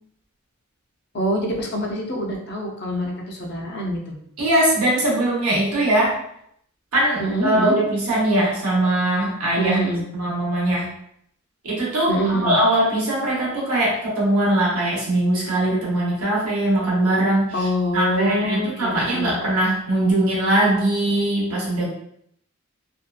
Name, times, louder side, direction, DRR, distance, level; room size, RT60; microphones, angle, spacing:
voice 1, 1.1-4.1 7.2-7.7 9.6-10.0 12.1-12.6 17.5-19.4, equal, 50° left, 0 dB, 0.6 m, -25 dB
voice 2, 4.4-6.2 6.9-9.8 10.1-10.9 11.6-21.9, right 1 dB, 85° right, -4 dB, 1.0 m, -21 dB
2.7 x 2.3 x 2.3 m, 0.71 s
head